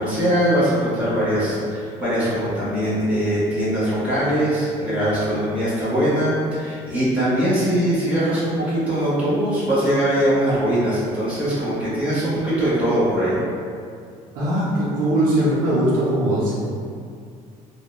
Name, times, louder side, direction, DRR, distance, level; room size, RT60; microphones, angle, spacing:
voice 1, 0.0-13.4, equal, 10° right, -12 dB, 1.2 m, -21 dB
voice 2, 14.3-16.5, right 1 dB, 70° right, -8 dB, 0.6 m, -20 dB
2.7 x 2.1 x 2.2 m, 2.3 s
cardioid pair, 110°, 15 cm